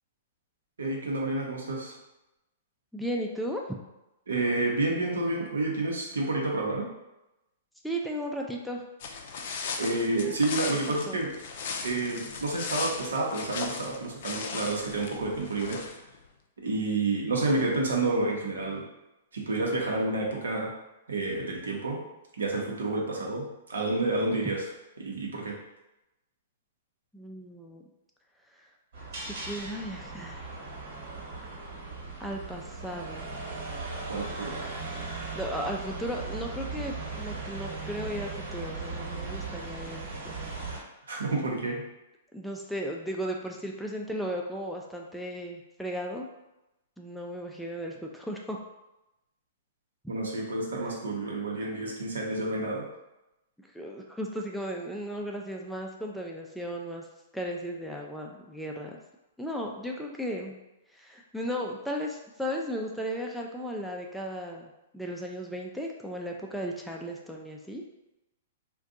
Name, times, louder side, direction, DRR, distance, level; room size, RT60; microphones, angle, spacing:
voice 1, 0.8-1.9 4.3-6.9 9.8-11.3 11.8-15.8 16.6-18.9 19.3-20.7 21.1-22.0 22.4-24.6 25.0-25.6 34.1-34.6 41.1-41.8 50.1-52.9, right 2 dB, 85° right, -1 dB, 0.8 m, -29 dB
voice 2, 2.9-3.6 7.8-8.8 11.1-11.2 27.1-27.8 28.5-28.7 29.1-30.5 32.2-33.3 35.3-40.3 42.3-46.3 47.0-48.6 53.6-57.1 57.3-59.0 59.4-60.6 60.9-67.8, equal, ahead, -1 dB, 0.4 m, -35 dB
sound 1, 9.0-16.2, left 5 dB, 60° left, 0.4 m, -37 dB
sound 2, 28.9-40.8, right 3 dB, 65° right, 1.3 m, -38 dB
2.5 x 2.2 x 3.7 m, 0.94 s
hypercardioid pair, 120°, 0 cm